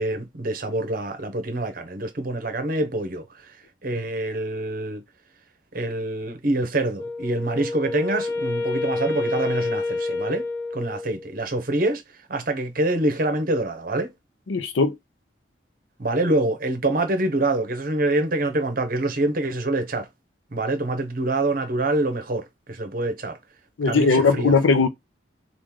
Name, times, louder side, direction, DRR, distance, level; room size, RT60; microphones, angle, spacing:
voice 1, 0.0-3.6 3.8-5.0 5.7-10.5 10.7-12.0 12.3-14.1 16.0-20.1 20.5-23.4 23.9-24.5, right 2 dB, 50° right, 0.8 m, -25 dB
Wind instrument woodwind instrument, 7.0-11.3, left 3 dB, 25° left, 1.2 m, -28 dB
voice 2, 14.5-15.0 23.8-24.9, left 4 dB, 90° left, 0.6 m, -19 dB
3.1 x 2.4 x 3.6 m
head